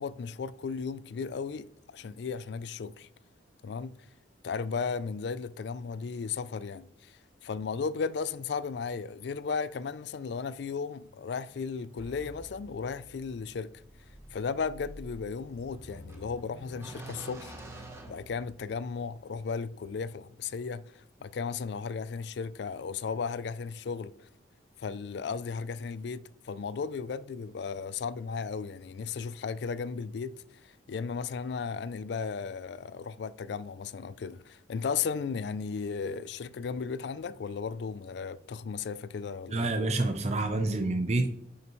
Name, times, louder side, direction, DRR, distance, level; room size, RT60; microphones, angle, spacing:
voice 1, 0.0-3.1 3.6-3.9 4.4-13.7 14.3-17.5 18.1-24.1 24.8-30.3 30.6-39.7, left 5 dB, 60° left, 0.3 m, -35 dB
sound 1, 12.0-18.9, right 1 dB, 15° right, 0.9 m, -48 dB
voice 2, 39.5-41.3, right 2 dB, 35° right, 0.6 m, -28 dB
9.4 x 5.6 x 3.1 m
head